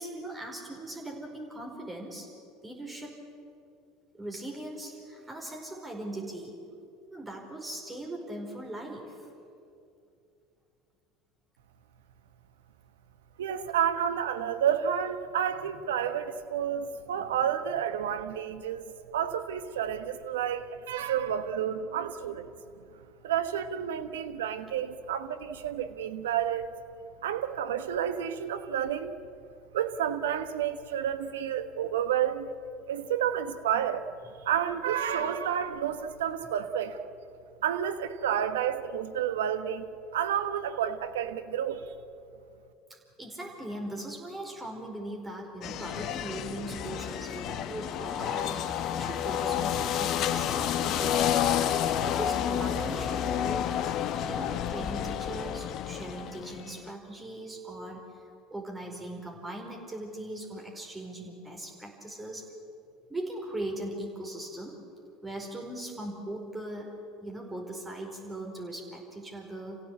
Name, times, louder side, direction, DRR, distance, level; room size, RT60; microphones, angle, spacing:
voice 1, 0.0-2.3 2.6-3.2 4.1-6.5 7.1-9.3 17.2-17.3 43.2-53.8 54.3-58.0 58.5-62.5 63.1-64.8 65.2-66.9 67.2-69.8, right 1 dB, 15° right, 4.9 m, -39 dB
voice 2, 13.4-22.5 23.2-26.7 27.2-29.1 29.7-32.5 32.9-34.1 34.4-37.1 37.6-41.9, right 9 dB, 80° right, 1.3 m, -30 dB
sound 1, 45.6-56.8, left 10 dB, 55° left, 1.1 m, -30 dB
27.0 x 16.5 x 8.5 m
hypercardioid pair, 75°, 0 cm